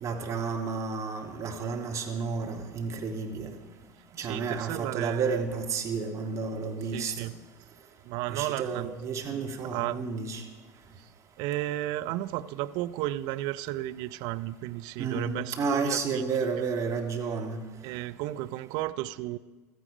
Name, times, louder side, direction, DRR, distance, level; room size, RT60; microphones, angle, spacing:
voice 1, 0.0-3.5 4.1-7.3 8.3-10.4 15.0-17.6, right 5 dB, 35° right, 3 dB, 2.1 m, -31 dB
voice 2, 4.2-5.4 6.9-7.3 8.0-8.9 9.2-10.0 11.4-16.3 16.6-16.7 17.8-19.4, right 15 dB, 55° right, 12 dB, 0.5 m, -33 dB
15.5 x 13.0 x 5.0 m, 1.3 s
figure-of-eight pair, 70°, 9 cm